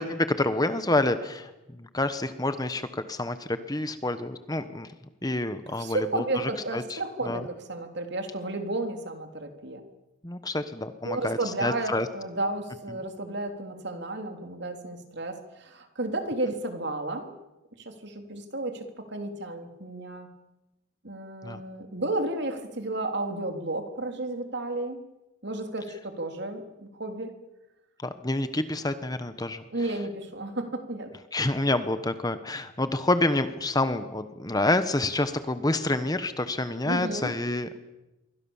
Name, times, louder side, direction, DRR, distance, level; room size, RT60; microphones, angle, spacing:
voice 1, 0.0-4.9 5.2-7.0 7.2-7.4 10.2-12.1 21.4-21.6 28.0-29.6 31.3-37.8, left 2 dB, 20° left, 11 dB, 1.1 m, -28 dB
voice 2, 5.8-9.8 11.0-17.3 17.8-20.3 21.0-25.0 25.4-27.3 29.7-31.1 36.8-37.3, right 2 dB, 55° right, 6 dB, 3.3 m, -32 dB
27.5 x 23.5 x 7.2 m, 1.0 s
head